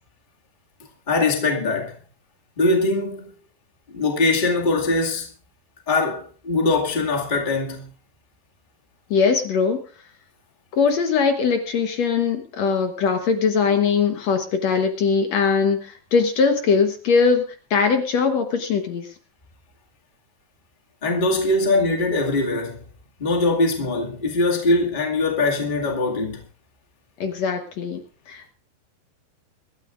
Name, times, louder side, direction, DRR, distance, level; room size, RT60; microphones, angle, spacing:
voice 1, 1.1-1.9 2.6-3.3 3.9-5.3 5.9-7.9 21.0-22.8 23.2-26.4, left 2 dB, 20° left, 1.6 m, -22 dB
voice 2, 9.1-9.8 10.7-17.5 17.7-19.1 27.2-28.0 28.3-28.5, left 5 dB, 60° left, 2.1 m, -21 dB
24.5 x 12.5 x 2.5 m
omnidirectional pair, 4.1 m